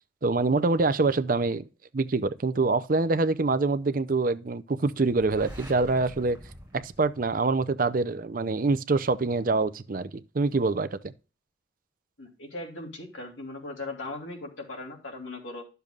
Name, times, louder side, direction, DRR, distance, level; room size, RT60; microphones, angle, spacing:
voice 1, 0.2-1.6 1.9-6.4 6.7-10.1 10.3-11.0, right 3 dB, 45° right, 0.5 m, -25 dB
sound 1, 5.0-7.9, equal, 5° right, 4.2 m, -45 dB
voice 2, 12.2-15.7, left 2 dB, 80° left, 3.1 m, -38 dB
12.0 x 6.8 x 2.4 m
head